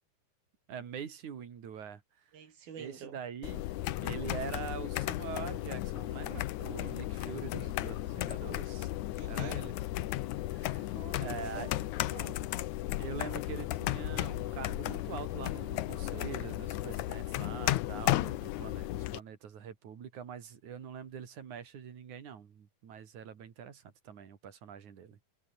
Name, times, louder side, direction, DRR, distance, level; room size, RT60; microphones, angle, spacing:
voice 1, 0.7-2.0 2.8-3.6 4.0-8.9 9.3-9.8 10.5-10.9 11.2-11.7 13.0-25.2, right 8 dB, 55° right, 3.8 m, -44 dB
voice 2, 2.3-3.2 9.2-9.6 11.0-12.5, right 7 dB, 80° right, 5.3 m, -48 dB
sound 1, 3.4-19.2, left 15 dB, 70° left, 1.9 m, -34 dB
omnidirectional pair, 4.2 m